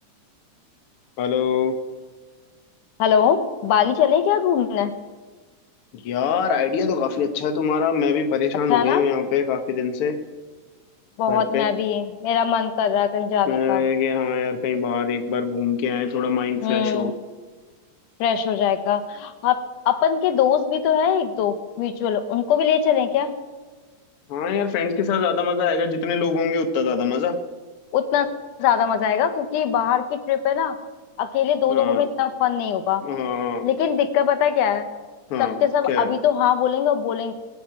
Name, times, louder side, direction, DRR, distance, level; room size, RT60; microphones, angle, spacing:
voice 1, 1.2-1.7 5.9-10.1 11.3-11.7 13.5-17.1 24.3-27.4 31.7-32.0 33.0-33.7 35.3-35.6 35.9-36.1, left 6 dB, 55° left, 6 dB, 1.8 m, -23 dB
voice 2, 3.0-4.9 8.7-9.0 11.2-13.8 16.6-17.1 18.2-23.3 27.9-28.3 28.6-30.8 31.2-33.0 33.6-34.9 35.4-37.3, left 8 dB, 90° left, 9 dB, 2.5 m, -21 dB
22.0 x 8.8 x 5.8 m, 1.4 s
omnidirectional pair, 3.5 m